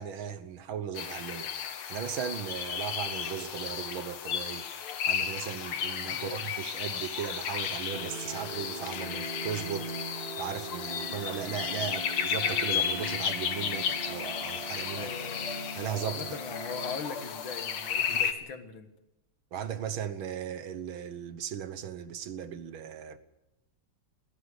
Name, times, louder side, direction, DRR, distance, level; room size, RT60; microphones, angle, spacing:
voice 1, 0.0-4.7 5.1-9.9 10.4-15.1 15.8-16.4 18.1-18.2 19.5-23.2, right 8 dB, 70° right, 1.9 m, -37 dB
sound 1, 0.9-18.3, left 8 dB, 90° left, 2.2 m, -34 dB
voice 2, 6.0-6.5 14.9-15.6 16.0-18.9, left 6 dB, 65° left, 2.3 m, -41 dB
sound 2, 7.9-18.1, right 3 dB, 25° right, 1.9 m, -42 dB
20.0 x 16.5 x 8.2 m
omnidirectional pair, 2.3 m